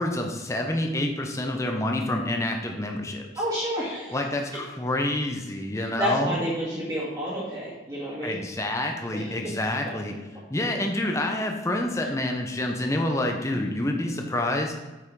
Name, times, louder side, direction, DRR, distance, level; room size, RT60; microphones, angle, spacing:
voice 1, 0.0-3.3 4.1-6.4 8.2-10.1 10.5-14.7, left 1 dB, 15° left, 3 dB, 0.7 m, -27 dB
voice 2, 3.4-4.2 5.7-8.4 9.1-9.4 13.5-13.6, equal, 20° right, -8 dB, 1.9 m, -30 dB
8.3 x 5.5 x 4.7 m, 1.2 s
head